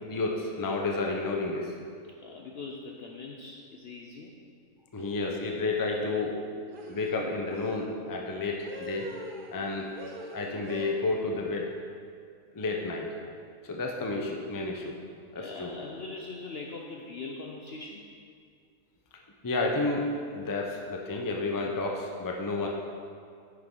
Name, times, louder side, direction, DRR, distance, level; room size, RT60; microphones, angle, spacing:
voice 1, 0.1-1.7 4.9-6.3 6.9-9.1 9.5-9.9 10.3-11.7 12.5-13.1 13.6-15.0 15.3-15.7 19.4-20.0 20.3-22.7, left 3 dB, 20° left, 1 dB, 0.5 m, -31 dB
voice 2, 2.2-4.4 15.4-18.1, left 3 dB, 60° left, 0 dB, 0.7 m, -41 dB
sound 1, 5.0-5.3 6.7-7.9 8.6-9.7 9.9-10.9, right 2 dB, 45° right, 0.8 m, -43 dB
9.1 x 6.6 x 3.8 m, 2.3 s
omnidirectional pair, 1.5 m